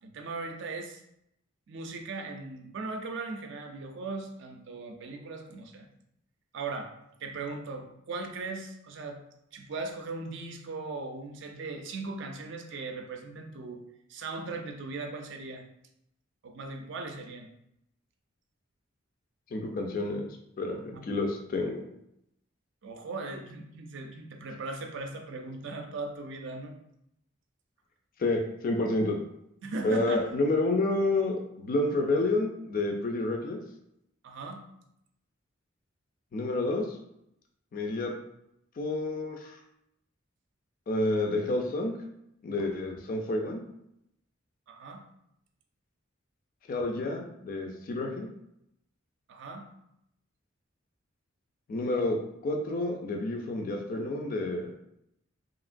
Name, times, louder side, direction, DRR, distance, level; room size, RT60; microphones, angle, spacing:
voice 1, 0.0-1.0 1.7-5.9 6.5-6.9 7.2-9.2 9.5-13.8 14.1-15.7 16.4-17.5 20.9-21.1 22.8-26.8 29.6-30.3 34.2-34.6 44.7-45.0 49.3-49.7, right 3 dB, 65° right, 5 dB, 0.4 m, -38 dB
voice 2, 19.5-20.3 20.6-21.8 28.2-29.2 29.8-33.6 36.3-37.0 37.7-38.1 38.8-39.6 40.9-41.9 42.4-43.6 46.7-48.3 51.7-52.2 52.4-54.7, left 2 dB, 45° left, 2 dB, 0.4 m, -29 dB
2.9 x 2.7 x 2.5 m, 0.79 s
head